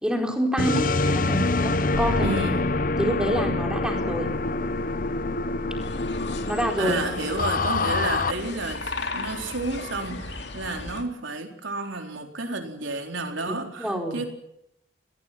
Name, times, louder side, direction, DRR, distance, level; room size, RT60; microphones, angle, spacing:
voice 1, 0.0-2.4 3.0-4.3 6.5-7.0 13.5-14.2, right 1 dB, 5° right, 2 dB, 4.3 m, -27 dB
sound 1, 0.6-8.3, left 3 dB, 45° left, 0.8 m, -26 dB
voice 2, 2.2-2.7 6.8-14.3, right 2 dB, 90° right, 4 dB, 4.0 m, -31 dB
sound 2, 5.8-11.0, left 2 dB, 65° left, 3.0 m, -35 dB
29.0 x 20.0 x 5.9 m, 0.79 s
head